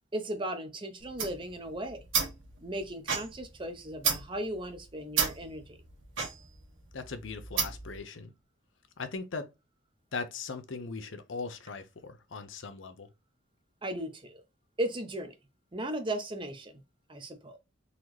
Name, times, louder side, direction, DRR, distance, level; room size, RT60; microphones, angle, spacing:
voice 1, 0.1-2.0 2.6-5.8 13.8-14.4 14.8-15.3 15.7-16.8 17.1-17.6, right 1 dB, 25° right, 0.7 m, -36 dB
sound 1, 1.0-8.0, right 6 dB, 75° right, 1.4 m, -34 dB
voice 2, 6.9-8.3 9.0-9.5 10.1-13.1, left 4 dB, 70° left, 0.7 m, -39 dB
4.0 x 3.0 x 3.1 m
head